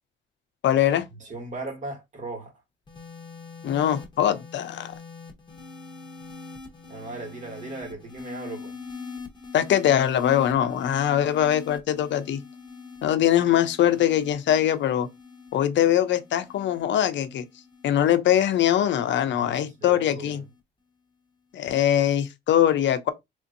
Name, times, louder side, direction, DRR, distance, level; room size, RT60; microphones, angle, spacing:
voice 1, 0.6-1.0 3.6-4.9 9.5-12.4 13.0-15.1 15.5-17.4 17.8-20.4 21.5-23.1, left 11 dB, 65° left, 0.6 m, -22 dB
voice 2, 1.2-2.5 6.9-8.8 19.2-20.4, right 2 dB, 40° right, 1.5 m, -38 dB
sound 1, 2.9-19.3 20.2-20.6, left 4 dB, 20° left, 1.0 m, -44 dB
3.7 x 2.6 x 2.5 m
cardioid pair, 90°, 20 cm